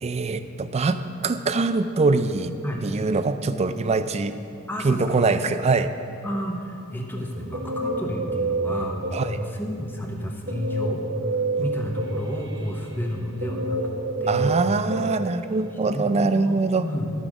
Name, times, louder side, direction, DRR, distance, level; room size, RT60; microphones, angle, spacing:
voice 1, 0.0-2.5 2.8-4.3 4.8-5.9 9.1-9.4 11.6-11.7 14.3-16.9, right 3 dB, 30° right, 11 dB, 0.4 m, -23 dB
voice 2, 4.7-5.2 6.2-11.0 11.6-13.9 14.2-14.6 15.8-17.0, equal, 10° left, 0 dB, 1.0 m, -31 dB
Guitar, 7.2-9.7 10.5-15.9, right 2 dB, 50° right, 1.0 m, -29 dB
12.5 x 5.1 x 6.1 m, 2.6 s
head